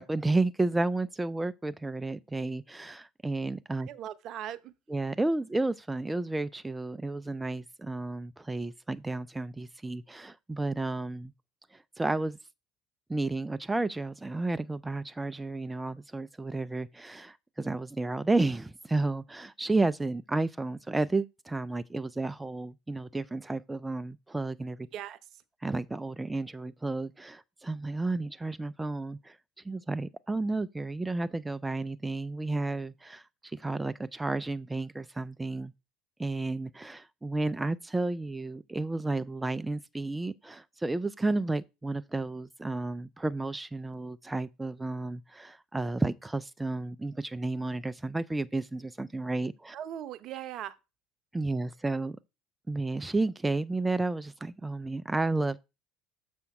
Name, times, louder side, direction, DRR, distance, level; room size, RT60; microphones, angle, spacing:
voice 1, 0.0-3.9 4.9-11.3 11.7-12.4 13.1-24.9 25.6-29.4 29.6-35.7 36.2-49.8 51.3-52.2 52.7-55.6, right 2 dB, 10° right, 0.4 m, -32 dB
voice 2, 3.9-4.7 24.9-25.2 49.7-50.7, right 11 dB, 55° right, 0.7 m, -39 dB
6.9 x 5.2 x 4.7 m
hypercardioid pair, 70°, 0 cm